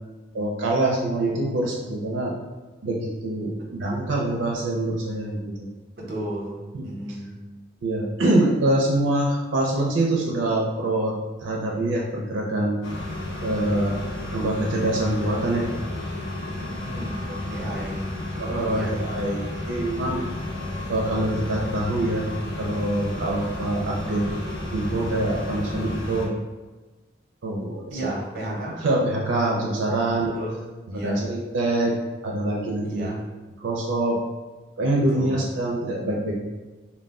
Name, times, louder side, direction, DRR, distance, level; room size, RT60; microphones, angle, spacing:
voice 1, 0.3-2.3 2.8-5.7 6.7-6.8 7.8-11.2 11.4-12.8 13.4-15.7 17.3-17.4 17.7-17.8 18.4-20.3 20.9-22.3 22.6-24.3 24.7-26.3 27.4-27.8 28.8-30.3 30.9-32.0 32.2-33.1 33.6-34.2 34.8-36.3, right 1 dB, 85° right, -2 dB, 0.4 m, -25 dB
voice 2, 6.0-7.4 16.6-17.2 17.5-18.0 18.6-19.0 27.9-28.8 30.0-30.6 30.9-31.2 32.8-33.2 35.1-35.5, right 1 dB, 50° right, -3 dB, 0.7 m, -33 dB
sound 1, 12.8-26.3, left 1 dB, 60° left, 0.6 m, -32 dB
2.2 x 2.1 x 3.5 m, 1.2 s
head